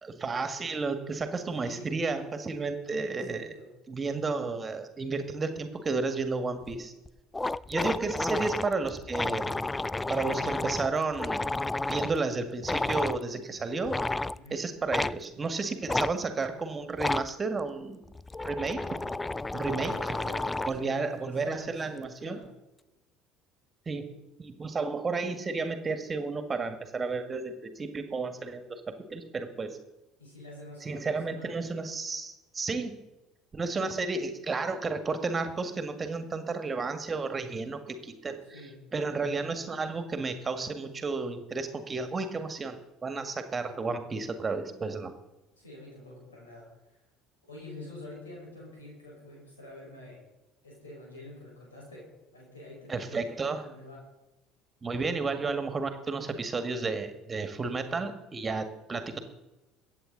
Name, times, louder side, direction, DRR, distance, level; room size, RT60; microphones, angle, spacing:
voice 1, 0.0-3.5 3.9-6.9 7.7-9.6 10.1-11.5 11.9-14.0 14.5-18.1 18.4-18.8 19.5-19.9 20.7-22.4 23.9-24.1 24.4-29.8 30.8-33.0 33.5-38.4 38.9-45.1 52.9-53.6 54.8-59.2, right 4 dB, 25° right, 8 dB, 1.8 m, -32 dB
voice 2, 1.6-1.9 3.2-3.7 14.3-14.6 19.8-22.5 30.2-31.6 38.5-38.9 45.6-47.0 47.4-50.2 50.6-54.0, left 1 dB, 80° left, -3 dB, 5.1 m, -47 dB
sound 1, 6.7-6.8 7.1-7.2 7.3-12.2 12.6-13.2 13.8-14.4 14.9-15.2 15.9-16.1 16.9-17.3 18.1-20.8, left 2 dB, 15° left, 0.3 m, -31 dB
22.5 x 9.0 x 4.0 m, 1.0 s
figure-of-eight pair, 60°, 0 cm